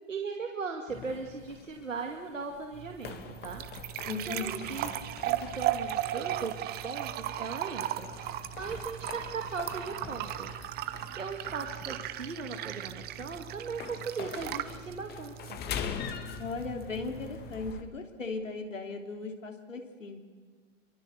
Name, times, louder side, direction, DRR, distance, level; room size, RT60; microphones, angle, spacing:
voice 1, 0.1-3.6 4.3-8.1 8.6-10.6 11.1-15.6, right 4 dB, 90° right, 3 dB, 2.4 m, -38 dB
sound 1, 0.9-17.8, left 8 dB, 25° left, 2.0 m, -44 dB
sound 2, 2.7-17.7, right 13 dB, 25° right, 1.0 m, -37 dB
voice 2, 4.0-4.7 16.4-20.2, left 3 dB, 85° left, 3 dB, 3.5 m, -37 dB
27.0 x 24.0 x 6.8 m, 1.5 s
hypercardioid pair, 115°, 38 cm